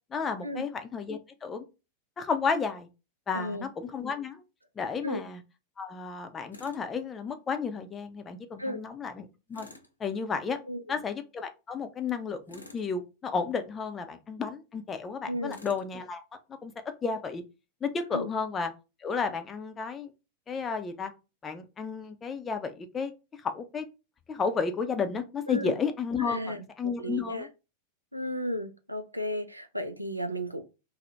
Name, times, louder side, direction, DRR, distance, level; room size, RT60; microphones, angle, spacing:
voice 1, 0.1-1.6 2.2-2.9 3.3-4.4 4.8-5.4 5.8-9.7 10.0-10.6 10.9-16.2 16.6-16.7 17.0-17.4 17.8-18.7 19.0-20.1 20.5-21.1 21.4-23.1 23.4-23.9 24.3-27.5, left 5 dB, 20° left, 0.5 m, -32 dB
voice 2, 3.3-3.6 5.0-5.2 8.6-8.8 10.6-10.8 15.3-15.6 18.1-18.3 25.5-25.8 26.2-26.6 27.0-27.5 28.1-30.6, equal, 85° right, 0.4 m, -34 dB
Tools, 6.5-6.8 9.5-9.9 12.5-12.9 15.5-15.9, left 2 dB, 80° left, 0.5 m, -49 dB
2.7 x 2.1 x 3.3 m
figure-of-eight pair, 90°, 0 cm